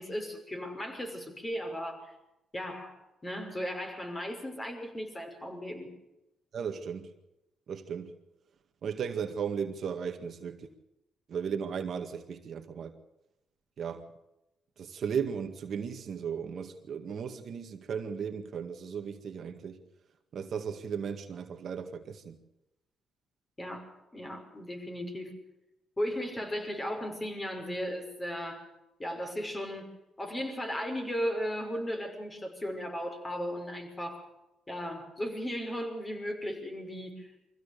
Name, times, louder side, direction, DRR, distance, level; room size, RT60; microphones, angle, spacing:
voice 1, 0.0-2.1 2.5-2.9 3.2-5.9 23.6-25.4 26.0-28.7 29.0-29.9 30.2-34.2 34.7-37.5, equal, 20° left, 5.9 m, -36 dB
voice 2, 6.5-7.1 7.7-8.2 8.8-10.7 11.3-12.9 13.8-14.1 14.8-19.8 20.3-22.4, right 7 dB, 60° right, 2.0 m, -36 dB
24.0 x 15.5 x 6.9 m
cardioid pair, 90°, 0 cm